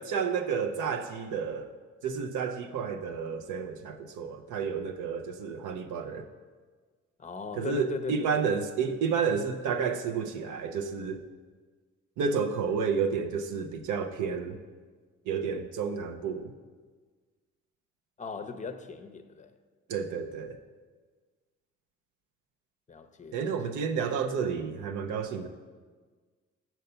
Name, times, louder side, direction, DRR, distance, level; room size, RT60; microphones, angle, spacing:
voice 1, 0.0-1.7 2.0-6.2 7.6-11.2 12.2-14.6 15.3-16.5 19.9-20.6 23.3-25.5, right 6 dB, 80° right, 0.6 m, -31 dB
voice 2, 7.2-8.6 18.2-19.5 22.9-23.8, left 4 dB, 25° left, 0.6 m, -38 dB
6.7 x 4.5 x 6.7 m
cardioid pair, 90°, 30 cm